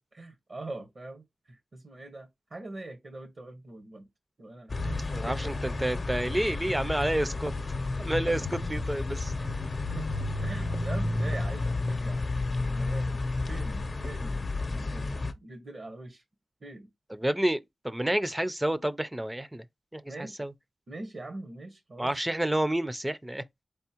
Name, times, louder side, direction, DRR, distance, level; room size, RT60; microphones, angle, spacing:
voice 1, 0.1-4.1 4.4-5.5 8.3-8.4 9.4-10.1 10.4-12.2 12.5-13.2 13.5-14.4 14.7-16.2 16.6-16.9 20.1-20.5 20.9-22.1, right 2 dB, 55° right, 0.9 m, -43 dB
sound 1, 4.7-15.3, left 2 dB, 55° left, 0.6 m, -31 dB
voice 2, 5.1-7.5 8.0-9.3 17.1-17.6 17.8-19.6 19.9-20.5 22.0-23.4, right 1 dB, 15° right, 0.4 m, -29 dB
4.1 x 3.5 x 2.8 m
wide cardioid pair, 75°, 0 cm